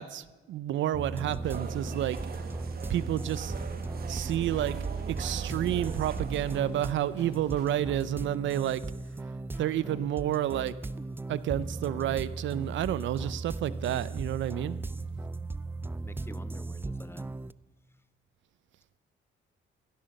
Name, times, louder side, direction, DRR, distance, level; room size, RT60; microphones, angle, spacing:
voice 1, 0.0-2.2 2.9-3.5 4.1-4.8 5.1-8.8 9.6-10.8 11.3-14.9, right 12 dB, 70° right, 17 dB, 0.6 m, -30 dB
sound 1, 0.9-17.5, right 3 dB, 10° right, 0.4 m, -37 dB
sound 2, 1.4-11.1, left 2 dB, 85° left, 6.9 m, -57 dB
sound 3, 1.5-6.6, right 7 dB, 50° right, 1.3 m, -39 dB
voice 2, 16.0-17.4, left 2 dB, 10° left, 15 dB, 0.7 m, -48 dB
16.0 x 11.0 x 6.5 m, 1.2 s
cardioid pair, 90°, 20 cm